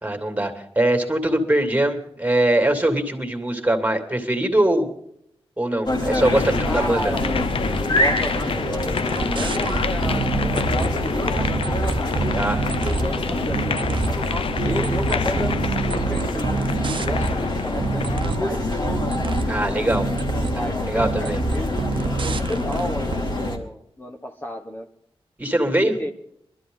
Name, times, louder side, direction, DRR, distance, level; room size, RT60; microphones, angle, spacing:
voice 1, 0.0-4.9 5.6-7.1 12.3-12.6 19.5-20.1 20.9-21.4 25.4-25.9, right 1 dB, 15° right, 5 dB, 2.6 m, -22 dB
sound 1, 5.9-23.6, left 1 dB, 50° left, 2.8 m, -26 dB
sound 2, 6.2-18.3, left 6 dB, 70° left, 0.7 m, -30 dB
voice 2, 6.6-11.7 12.5-14.4 14.6-15.6 15.9-18.7 20.3-24.9 25.8-26.1, equal, 20° left, 2 dB, 1.2 m, -33 dB
sound 3, 9.0-11.0 11.4-13.1 13.5-14.2 14.6-17.4 17.8-18.5 18.8-19.5 19.9-20.6 21.0-22.8 23.1-23.3, right 4 dB, 55° right, 1.0 m, -27 dB
22.0 x 13.0 x 3.9 m, 0.73 s
wide cardioid pair, 105°, 10 cm